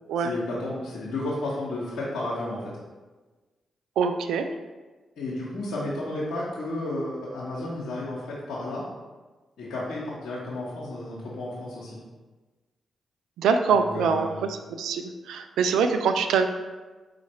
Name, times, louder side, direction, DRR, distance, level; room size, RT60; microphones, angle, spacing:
voice 1, 0.2-2.6 5.2-8.8 9.6-12.0 13.7-14.5, left 2 dB, 75° left, -8 dB, 0.8 m, -32 dB
voice 2, 4.0-4.5 13.4-14.3 14.8-16.5, right 6 dB, 75° right, 7 dB, 0.3 m, -23 dB
5.0 x 2.5 x 4.2 m, 1.3 s
hypercardioid pair, 40°, 0 cm